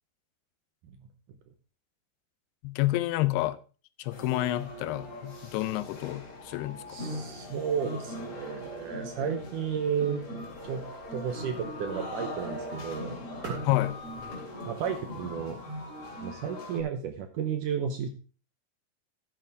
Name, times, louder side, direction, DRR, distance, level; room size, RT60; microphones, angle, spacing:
voice 1, 2.6-3.6 4.0-7.0 13.7-13.9, left 17 dB, 85° left, 2.7 m, -29 dB
sound 1, 4.1-16.8, left 1 dB, 40° left, 3.5 m, -40 dB
voice 2, 6.9-10.2 10.6-10.8 11.1-13.2 13.4-13.6 14.7-15.6 16.2-18.1, right 7 dB, 70° right, 2.0 m, -33 dB
12.5 x 8.8 x 3.6 m
omnidirectional pair, 4.6 m